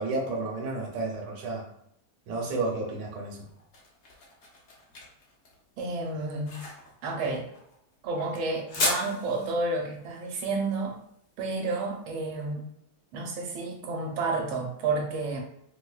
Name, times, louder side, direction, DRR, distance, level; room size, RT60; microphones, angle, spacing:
voice 1, 0.0-1.6 2.3-3.5, right 3 dB, 70° right, -1 dB, 1.3 m, -31 dB
sound 1, 3.2-12.3, left 2 dB, 60° left, 0.7 m, -37 dB
voice 2, 5.8-6.6 7.0-7.5 8.0-11.0 11.4-12.6 13.1-15.4, right 3 dB, 85° right, 1 dB, 1.5 m, -30 dB
4.9 x 2.2 x 2.3 m, 0.74 s
omnidirectional pair, 2.2 m